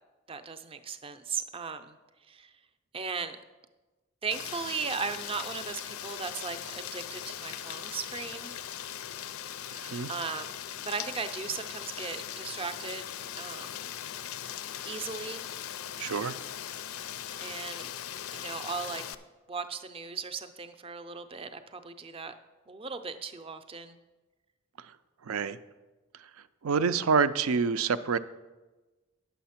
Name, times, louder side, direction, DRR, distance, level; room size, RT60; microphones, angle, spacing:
voice 1, 0.3-2.0 2.3-2.5 2.9-3.4 4.2-8.5 10.1-13.8 14.8-15.4 17.4-17.9 18.3-19.0 19.5-22.3 22.7-24.0, right 5 dB, 25° right, 10 dB, 0.5 m, -37 dB
Rain, 4.3-19.1, left 10 dB, 80° left, 0.4 m, -40 dB
voice 2, 9.7-10.1 16.0-16.4 25.2-25.6 26.6-28.2, right 5 dB, 80° right, 13 dB, 0.4 m, -27 dB
9.3 x 7.0 x 5.8 m, 1.2 s
head